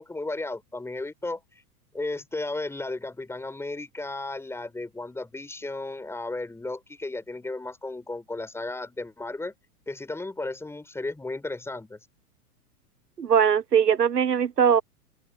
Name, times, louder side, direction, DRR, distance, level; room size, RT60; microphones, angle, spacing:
voice 1, 0.0-1.4 1.9-9.5 9.9-12.0, left 2 dB, 5° left, 5.2 m, -34 dB
voice 2, 13.2-14.8, right 7 dB, 85° right, 0.7 m, -21 dB
open air
figure-of-eight pair, 100°, 47 cm